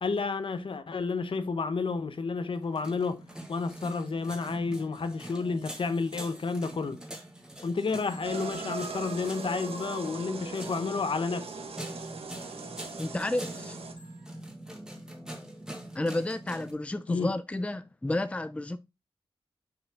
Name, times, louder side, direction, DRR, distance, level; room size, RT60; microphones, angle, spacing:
voice 1, 0.0-3.2 3.5-7.0 7.6-11.5 17.1-17.3, left 4 dB, 65° left, 0.9 m, -31 dB
sound 1, 2.6-16.7, right 1 dB, 5° right, 1.7 m, -44 dB
Telephone, 8.0-11.0 14.0-14.4, right 2 dB, 60° right, 2.5 m, -53 dB
sound 2, 8.2-13.9, right 4 dB, 90° right, 1.1 m, -40 dB
voice 2, 13.0-13.8 15.9-18.8, left 1 dB, 15° left, 0.4 m, -31 dB
6.7 x 4.6 x 3.5 m
wide cardioid pair, 90°, 10 cm